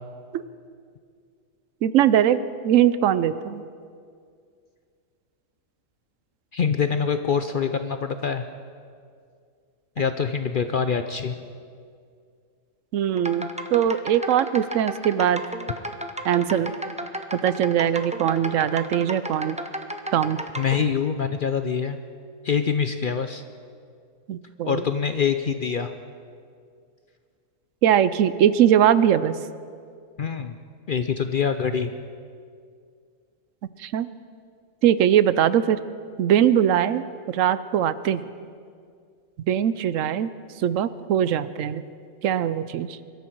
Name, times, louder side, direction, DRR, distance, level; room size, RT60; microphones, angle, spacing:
voice 1, 1.8-3.6 12.9-15.4 16.2-16.7 17.4-19.6 20.1-20.4 24.3-24.8 27.8-29.4 33.8-34.1 34.8-35.8 36.2-38.2 39.5-40.3 40.6-41.8 42.2-42.9, right 10 dB, 70° right, 15 dB, 1.0 m, -21 dB
voice 2, 6.5-8.5 10.0-11.4 20.6-22.0 22.4-23.4 24.7-25.9 30.2-30.6 30.9-31.9, left 6 dB, 55° left, 8 dB, 0.6 m, -25 dB
sound 1, 13.1-20.8, right 1 dB, 10° right, 0.4 m, -33 dB
24.5 x 13.0 x 4.6 m, 2.2 s
omnidirectional pair, 1.4 m